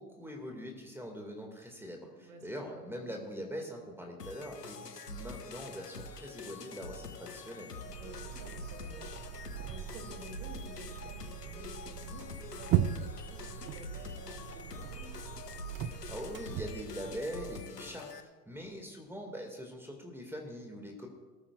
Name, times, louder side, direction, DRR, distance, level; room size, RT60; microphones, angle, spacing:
voice 1, 0.0-7.7 16.1-18.1 18.5-21.1, equal, 5° right, 1 dB, 2.1 m, -42 dB
voice 2, 2.1-2.7 7.8-9.1 9.6-15.2, right 1 dB, 65° right, 4 dB, 3.0 m, -52 dB
sound 1, 4.2-18.2, left 3 dB, 85° left, 1.1 m, -45 dB
sound 2, 5.3-15.6, right 2 dB, 50° right, 5.3 m, -59 dB
sound 3, 7.8-17.2, right 11 dB, 20° right, 0.3 m, -38 dB
21.5 x 14.0 x 2.5 m, 1.3 s
figure-of-eight pair, 80°, 47 cm